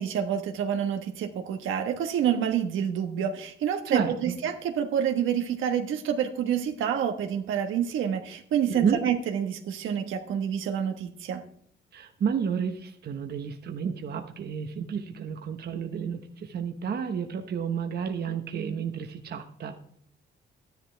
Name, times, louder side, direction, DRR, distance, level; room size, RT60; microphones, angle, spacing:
voice 1, 0.0-11.4, right 8 dB, 80° right, 5 dB, 1.3 m, -28 dB
voice 2, 3.9-4.4 8.7-9.0 11.9-19.8, right 7 dB, 55° right, 5 dB, 1.1 m, -31 dB
12.5 x 10.5 x 3.4 m, 0.64 s
cardioid pair, 90°, 20 cm